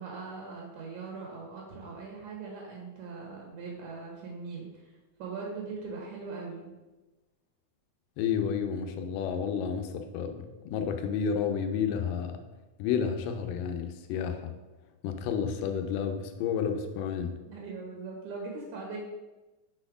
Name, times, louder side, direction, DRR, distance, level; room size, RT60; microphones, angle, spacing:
voice 1, 0.0-4.9 5.2-6.7 17.5-19.0, right 4 dB, 70° right, -2 dB, 2.5 m, -40 dB
voice 2, 8.2-10.4 10.7-12.4 12.8-14.5 15.0-17.4, left 7 dB, 90° left, 6 dB, 2.3 m, -31 dB
6.1 x 4.2 x 4.9 m, 1.1 s
omnidirectional pair, 3.8 m